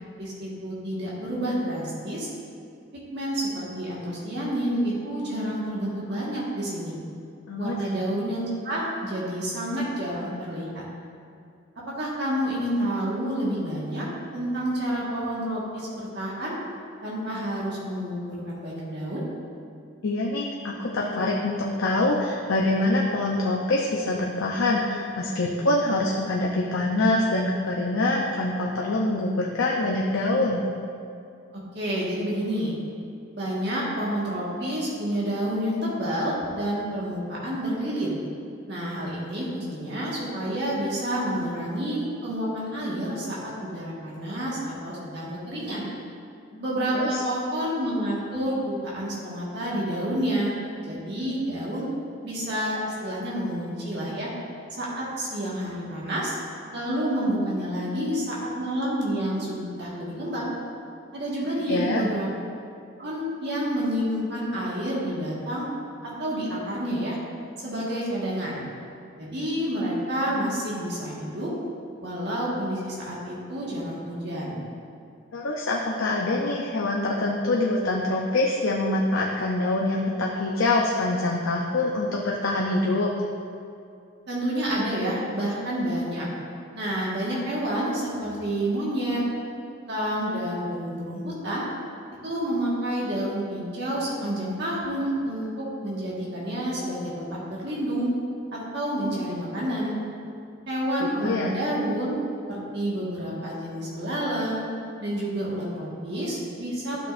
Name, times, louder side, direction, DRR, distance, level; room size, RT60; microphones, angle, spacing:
voice 1, 0.2-2.3 3.1-7.0 7.6-10.8 12.0-14.1 14.3-16.6 17.0-19.2 31.7-32.7 33.3-38.2 38.7-45.8 46.6-50.5 50.8-51.9 52.2-54.3 54.8-56.4 56.7-60.4 61.1-62.3 63.0-65.7 66.2-67.2 67.6-68.6 69.2-71.5 72.0-74.6 84.3-86.3 86.7-89.2 89.9-91.7 92.2-98.1 98.5-100.0 100.7-102.2 102.5-104.6 105.0-107.0, equal, 55° right, -6 dB, 1.6 m, -29 dB
voice 2, 7.5-7.8 20.0-30.6 46.5-46.6 46.9-47.2 61.7-62.1 75.3-83.1 101.0-101.6, left 2 dB, 75° left, -2 dB, 0.7 m, -25 dB
12.5 x 6.0 x 2.6 m, 2.5 s
head